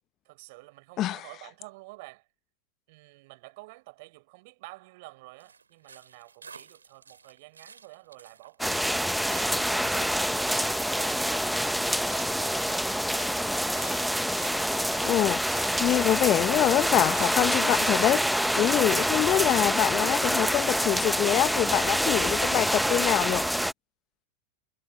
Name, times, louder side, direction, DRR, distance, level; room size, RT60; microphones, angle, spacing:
voice 1, 0.2-2.3 2.9-9.1, right 24 dB, 55° right, 4.7 m, -50 dB
sound 1, 5.4-19.7, right 5 dB, 85° right, 2.5 m, -49 dB
sound 2, 8.6-23.7, equal, ahead, 1.0 m, -26 dB
voice 2, 15.0-23.4, left 14 dB, 40° left, 1.0 m, -25 dB
hypercardioid pair, 95°, 0 cm